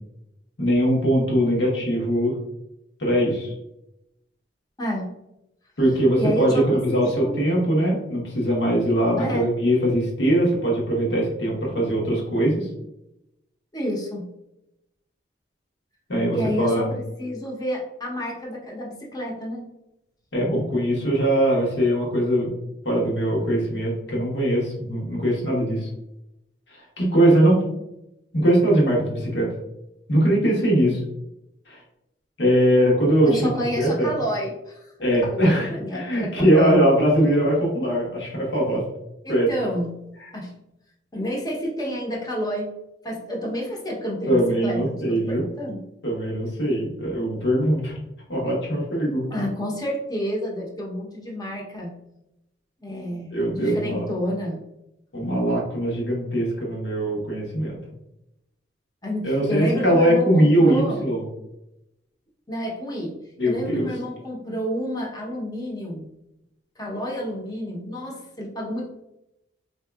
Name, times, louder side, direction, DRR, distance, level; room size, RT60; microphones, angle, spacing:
voice 1, 0.6-2.3 3.0-3.5 5.8-12.7 16.1-16.9 20.3-22.5 22.8-25.9 27.0-27.6 28.3-29.5 30.1-31.0 31.7-31.8 32.4-34.1 35.0-38.8 39.3-39.5 44.3-45.4 46.0-47.9 48.3-49.3 53.3-54.1 55.1-57.8 59.2-61.2 63.4-63.9, right 1 dB, 75° left, -3 dB, 1.2 m, -21 dB
voice 2, 4.8-5.1 6.2-7.4 9.2-9.5 13.7-14.2 16.3-19.7 33.3-34.9 35.2-36.8 39.2-39.9 40.3-40.5 41.1-42.7 43.0-45.8 49.3-51.9 52.8-54.6 59.0-61.0 62.5-63.2 63.4-66.1 66.8-68.9, equal, 20° left, -2 dB, 0.8 m, -29 dB
4.2 x 2.7 x 2.3 m, 0.87 s
head